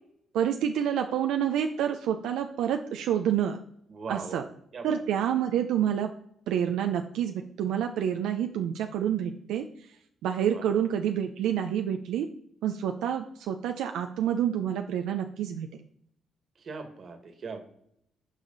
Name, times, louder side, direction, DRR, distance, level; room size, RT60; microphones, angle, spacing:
voice 1, 0.3-3.6 4.1-4.5 4.8-6.1 6.5-10.0 10.2-12.3 12.6-15.7, right 9 dB, 85° right, 5 dB, 0.6 m, -28 dB
voice 2, 3.9-4.4 4.7-5.0 10.5-10.6 16.6-17.6, right 4 dB, 50° right, 6 dB, 1.8 m, -39 dB
14.0 x 4.9 x 4.0 m, 0.70 s
cardioid pair, 90°, 0 cm